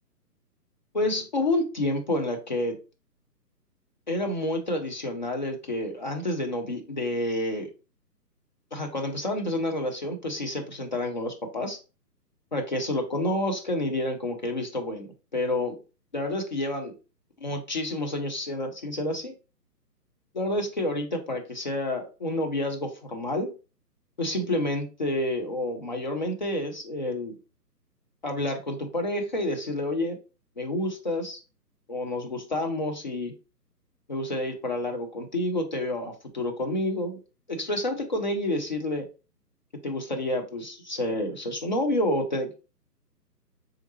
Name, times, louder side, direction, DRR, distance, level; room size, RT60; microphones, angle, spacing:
voice 1, 0.9-2.8 4.1-7.7 8.7-11.8 12.5-15.8 16.1-16.9 17.4-19.3 20.3-23.5 24.2-27.4 28.2-30.2 30.6-31.4 31.9-33.3 34.1-37.2 37.5-39.1 39.8-42.5, left 1 dB, 30° left, 3 dB, 0.6 m, -29 dB
4.3 x 3.8 x 2.8 m, 0.32 s
figure-of-eight pair, 135°, 49 cm